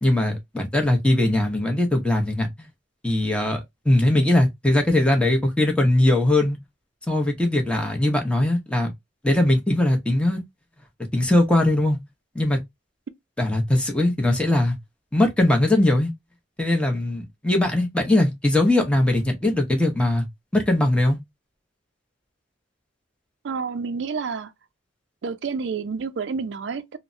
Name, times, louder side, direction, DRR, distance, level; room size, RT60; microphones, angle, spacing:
voice 1, 0.0-2.5 3.0-6.6 7.1-8.9 9.2-10.4 11.1-12.0 12.3-12.6 13.4-14.8 15.1-16.1 16.6-20.2 20.5-21.2, left 1 dB, 5° left, 0.7 m, -20 dB
voice 2, 23.4-24.5 25.2-27.0, right 5 dB, 70° right, 0.4 m, -29 dB
3.2 x 2.1 x 2.5 m
head